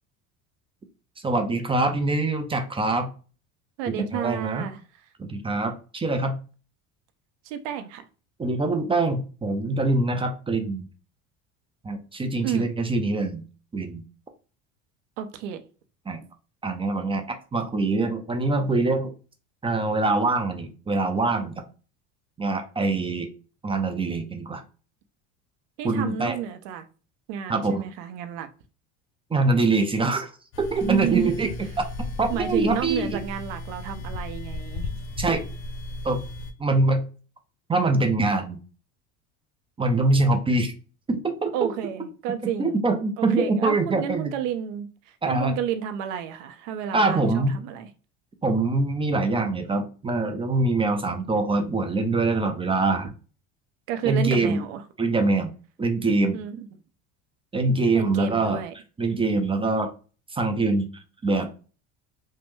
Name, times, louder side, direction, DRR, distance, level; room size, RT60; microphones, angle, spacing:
voice 1, 1.2-3.1 3.9-4.7 5.2-6.4 8.4-10.9 11.8-13.4 13.7-14.0 16.1-16.2 16.6-19.1 19.6-21.5 22.4-23.3 23.6-24.6 25.8-26.4 27.5-27.8 29.3-30.3 30.6-31.5 32.2-33.2 35.2-35.4 36.0-36.2 36.6-37.0 37.7-38.6 39.8-40.7 41.1-41.7 42.6-44.3 45.2-45.5 46.9-47.6 48.4-53.1 54.0-54.6 55.0-55.5 55.8-56.4 57.5-58.6 59.0-59.9 60.3-60.9 61.2-61.5, right 2 dB, 15° right, 0.4 m, -24 dB
voice 2, 3.8-4.8 7.4-8.1 12.4-12.7 15.2-15.6 25.8-26.9 27.3-28.5 30.9-31.3 32.3-34.9 41.5-42.8 43.2-44.9 45.3-47.9 53.9-54.8 56.3-56.7 57.9-58.7, right 9 dB, 80° right, 0.6 m, -31 dB
sound 1, 30.5-36.5, left 2 dB, 70° left, 0.6 m, -35 dB
3.1 x 2.1 x 3.1 m
supercardioid pair, 95°, 37 cm